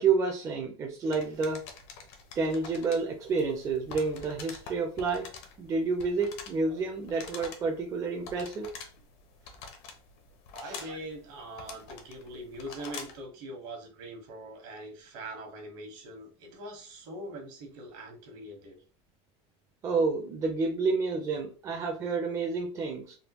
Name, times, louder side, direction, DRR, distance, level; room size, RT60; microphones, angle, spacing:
voice 1, 0.0-1.6 2.4-5.3 5.6-8.7 10.6-10.8 19.8-23.1, right 4 dB, 20° right, 1 dB, 0.4 m, -29 dB
sound 1, 1.1-13.3, left 5 dB, 80° left, 0.8 m, -47 dB
voice 2, 10.5-18.8, right 1 dB, 60° right, 2 dB, 1.2 m, -42 dB
3.5 x 2.2 x 2.9 m, 0.37 s
cardioid pair, 165°, 14 cm